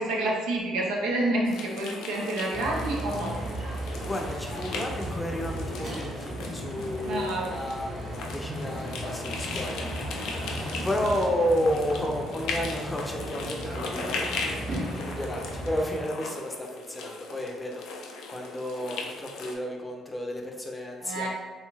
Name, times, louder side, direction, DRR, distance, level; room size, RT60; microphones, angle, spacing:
voice 1, 0.0-3.4 7.0-7.5 21.0-21.3, right 1 dB, 85° right, -2 dB, 0.6 m, -28 dB
sound 1, 1.4-19.5, left 3 dB, 75° left, 0.4 m, -38 dB
sound 2, 2.5-16.0, right 1 dB, 45° right, 0.9 m, -35 dB
voice 2, 4.0-8.0 8.3-10.4 10.8-14.6 14.9-21.3, equal, 15° left, 0 dB, 0.6 m, -32 dB
2.6 x 2.3 x 3.1 m, 1.3 s
supercardioid pair, 65°, 0 cm